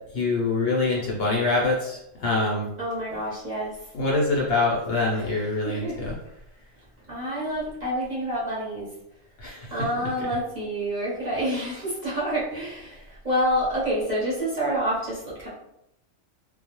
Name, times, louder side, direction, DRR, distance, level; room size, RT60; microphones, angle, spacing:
voice 1, 0.1-2.7 3.9-6.1 9.4-9.7, left 3 dB, 60° left, -4 dB, 0.7 m, -25 dB
voice 2, 2.8-3.7 5.1-5.3 5.6-6.0 7.1-8.9 9.7-15.5, equal, 40° right, -8 dB, 0.7 m, -28 dB
2.3 x 2.0 x 2.9 m, 0.79 s
omnidirectional pair, 1.4 m